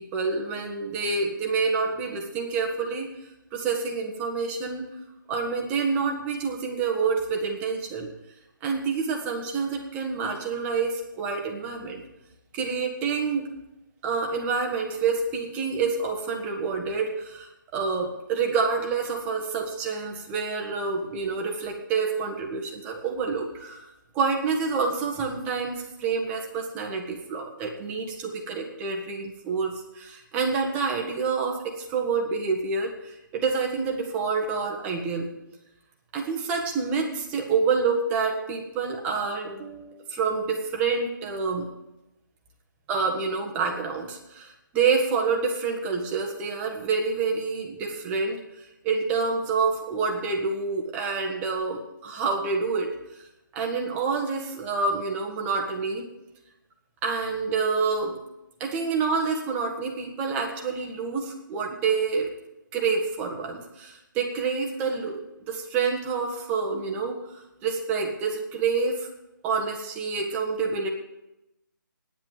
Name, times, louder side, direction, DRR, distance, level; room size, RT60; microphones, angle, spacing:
voice 1, 0.0-3.1 3.5-4.9 5.3-8.1 8.6-12.0 12.5-13.5 14.0-35.3 36.1-41.7 42.9-53.0 53.5-56.1 57.0-58.2 58.6-62.3 62.7-69.1 69.4-70.9, right 5 dB, 15° right, 1 dB, 1.4 m, -28 dB
9.8 x 8.9 x 8.9 m, 0.93 s
figure-of-eight pair, 160°, 11 cm